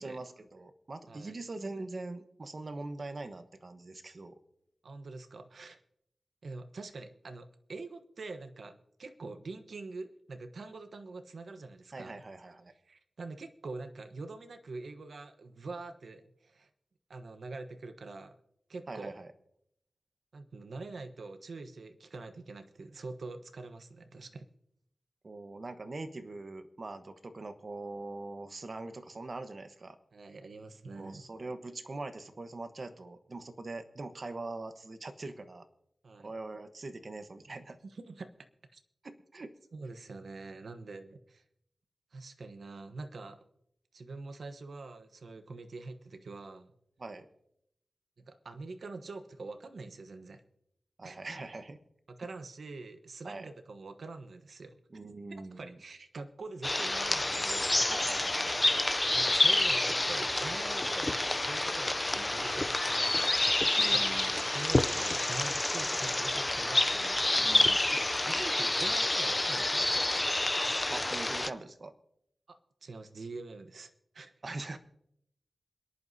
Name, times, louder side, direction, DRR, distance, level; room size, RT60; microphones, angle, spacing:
voice 1, 0.0-4.3 11.9-12.7 18.9-19.3 25.2-30.0 30.9-35.6 36.2-37.8 39.0-39.5 47.0-47.3 51.0-51.8 53.2-53.5 54.9-55.8 57.9-58.6 63.7-64.4 67.3-67.8 70.9-71.9 74.4-74.8, right 2 dB, 45° right, 9 dB, 1.1 m, -42 dB
voice 2, 4.8-5.8 6.4-12.2 12.8-16.7 17.1-18.4 18.7-19.1 20.3-24.5 30.1-31.2 36.0-36.3 37.8-38.3 38.7-38.8 39.7-41.4 42.1-43.4 43.9-46.7 48.2-50.4 51.0-51.3 52.1-54.8 55.3-58.2 59.1-63.6 63.9-64.2 64.4-67.7 68.1-70.0 72.5-74.3, right 3 dB, 65° right, 8 dB, 1.1 m, -45 dB
sound 1, 56.6-71.5, left 2 dB, 20° left, 0.5 m, -28 dB
27.5 x 11.0 x 2.8 m, 0.75 s
wide cardioid pair, 95°, 0 cm